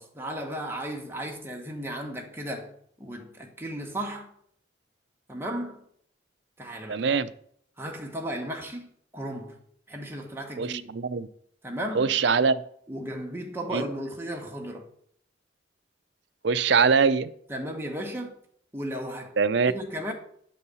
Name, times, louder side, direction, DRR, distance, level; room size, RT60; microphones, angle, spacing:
voice 1, 0.0-2.7 3.0-4.3 5.3-5.8 6.6-7.0 7.8-9.6 9.9-10.9 11.6-12.1 12.9-14.9 17.5-18.4 18.7-19.3 19.7-20.1, right 1 dB, 10° right, 1.3 m, -35 dB
voice 2, 6.9-7.3 10.6-11.3 11.9-12.6 13.7-13.8 16.4-17.3 19.4-19.7, right 5 dB, 60° right, 0.5 m, -23 dB
9.8 x 4.2 x 6.8 m
head